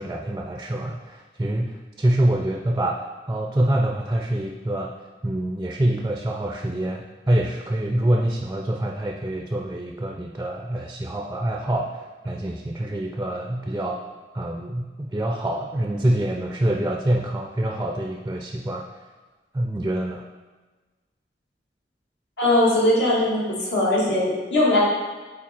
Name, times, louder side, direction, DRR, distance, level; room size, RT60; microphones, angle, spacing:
voice 1, 0.0-4.9 5.2-14.0 14.3-18.9 19.5-20.2, right 1 dB, 15° right, 2 dB, 0.3 m, -25 dB
voice 2, 22.4-23.4 23.7-24.8, left 1 dB, 85° left, -6 dB, 2.0 m, -20 dB
7.4 x 3.9 x 4.3 m, 1.3 s
head